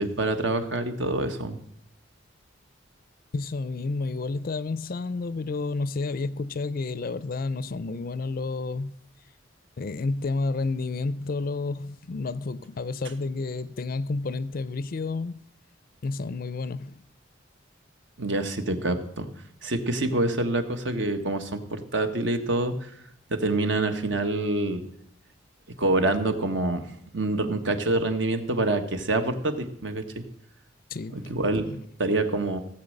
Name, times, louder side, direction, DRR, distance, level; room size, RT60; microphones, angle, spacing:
voice 1, 0.0-1.6 18.2-19.3 19.6-22.9 23.3-24.8 25.8-26.8 27.1-30.2 31.1-31.7 32.0-32.6, right 2 dB, 70° right, 1.4 m, -26 dB
voice 2, 3.3-8.9 9.8-15.4 16.0-17.0 30.9-31.8, left 3 dB, 50° left, 0.4 m, -30 dB
16.5 x 7.6 x 6.5 m
head